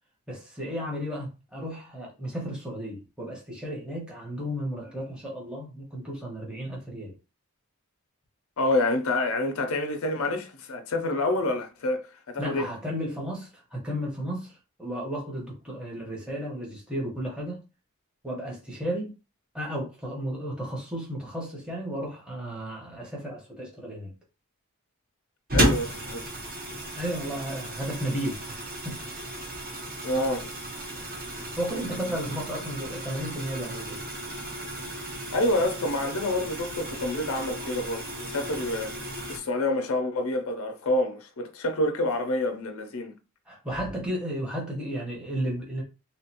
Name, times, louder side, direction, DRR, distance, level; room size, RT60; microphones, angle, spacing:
voice 1, 0.3-7.1 12.4-14.5 14.8-17.6 18.2-19.1 19.5-24.1 26.9-29.3 30.9-34.0 43.5-45.8, equal, 5° right, 1.0 m, -34 dB
voice 2, 8.6-12.7 25.5-26.3 30.0-30.5 35.3-39.0 39.3-43.1, left 1 dB, 70° left, 0.5 m, -27 dB
sound 1, 25.5-39.4, right 1 dB, 40° right, 1.1 m, -33 dB
3.1 x 2.4 x 2.8 m
head